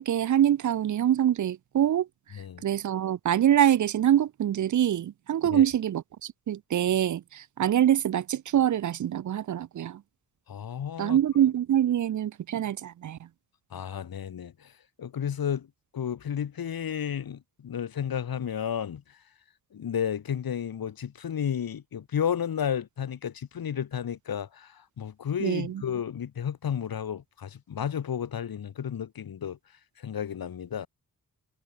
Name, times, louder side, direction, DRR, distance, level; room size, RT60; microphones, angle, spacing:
voice 1, 0.0-2.1 2.6-10.0 11.0-13.2 25.4-25.8, right 11 dB, 55° right, 0.5 m, -25 dB
voice 2, 10.5-11.2 13.7-14.5 15.0-15.7 15.9-19.0 19.7-24.7 25.0-29.6 30.0-30.9, left 8 dB, 75° left, 2.1 m, -32 dB
cardioid pair, 65°, 35 cm